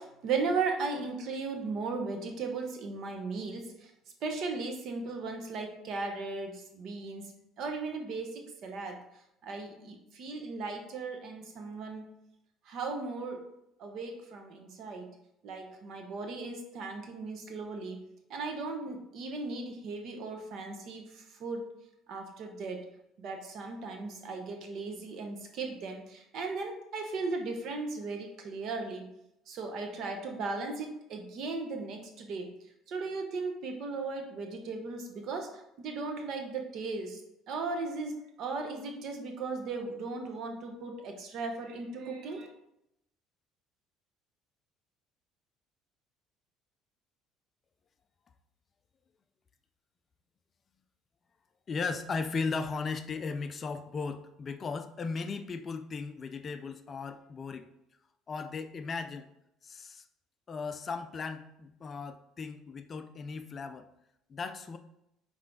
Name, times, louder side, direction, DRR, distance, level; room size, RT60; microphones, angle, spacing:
voice 1, 0.0-3.9 4.2-7.3 7.6-9.0 9.4-12.1 12.7-13.4 13.8-15.1 15.4-21.7 22.1-22.9 23.2-29.1 29.5-32.5 32.9-37.2 37.5-42.5, right 3 dB, 55° right, 4 dB, 1.1 m, -37 dB
voice 2, 51.7-57.7 58.3-59.3 59.6-60.1 60.5-63.9 64.3-64.8, left 4 dB, 30° left, 8 dB, 0.4 m, -36 dB
6.1 x 4.2 x 3.8 m, 0.82 s
cardioid pair, 135°, 0 cm